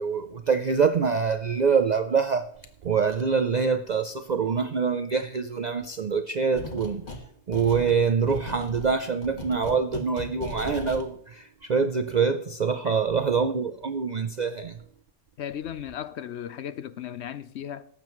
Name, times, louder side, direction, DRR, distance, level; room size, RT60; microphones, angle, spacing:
voice 1, 0.0-2.5 2.8-7.1 7.5-14.8, right 5 dB, 60° right, 0.4 m, -25 dB
sound 1, 6.5-7.2 7.5-11.0, left 1 dB, 35° left, 1.5 m, -37 dB
voice 2, 15.4-17.9, left 9 dB, 65° left, 0.8 m, -36 dB
18.0 x 8.3 x 3.0 m
omnidirectional pair, 1.3 m